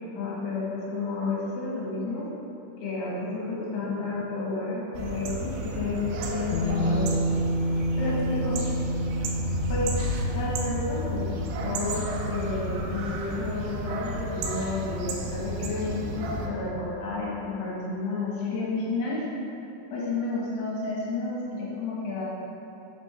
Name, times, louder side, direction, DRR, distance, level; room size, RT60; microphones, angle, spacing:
voice 1, 0.0-2.2 2.8-7.2 8.0-8.6 9.7-9.9 10.3-11.3 11.6-19.2 19.9-22.3, left 3 dB, 65° left, -7 dB, 3.4 m, -31 dB
sound 1, 4.9-16.5, right 1 dB, 85° right, 2.3 m, -32 dB
Bass guitar, 6.5-12.8, equal, 85° left, 2.9 m, -30 dB
11.5 x 7.5 x 3.7 m, 2.9 s
omnidirectional pair, 5.9 m